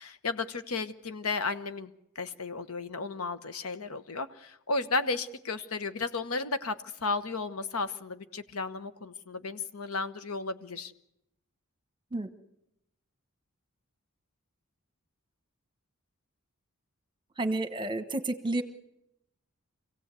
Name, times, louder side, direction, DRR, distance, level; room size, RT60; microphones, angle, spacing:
voice 1, 0.0-10.9, left 3 dB, 85° left, 11 dB, 1.1 m, -34 dB
voice 2, 17.4-18.6, right 2 dB, 20° right, 10 dB, 1.2 m, -30 dB
26.0 x 16.5 x 8.3 m, 0.83 s
head